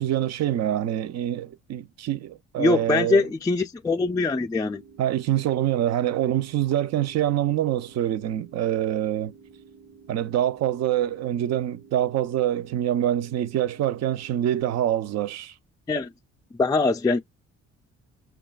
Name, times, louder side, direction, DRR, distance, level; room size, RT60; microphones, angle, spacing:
voice 1, 0.0-3.3 5.0-9.3 10.1-15.5, right 11 dB, 60° right, 0.5 m, -25 dB
voice 2, 2.6-4.8 15.9-16.1 16.6-17.2, left 3 dB, 10° left, 0.3 m, -22 dB
sound 1, 4.6-14.6, right 5 dB, 85° right, 1.1 m, -51 dB
6.1 x 2.3 x 2.2 m
cardioid pair, 90°, 30 cm